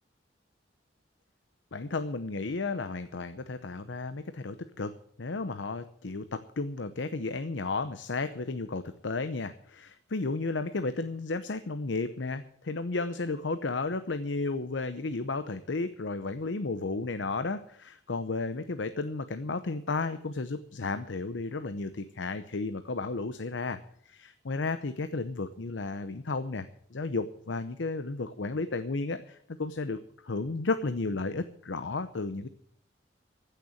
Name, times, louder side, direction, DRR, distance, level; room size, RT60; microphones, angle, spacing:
voice 1, 1.7-4.9 5.2-23.8 24.1-32.5, left 3 dB, 80° left, 10 dB, 0.8 m, -33 dB
15.0 x 6.8 x 9.5 m, 0.66 s
head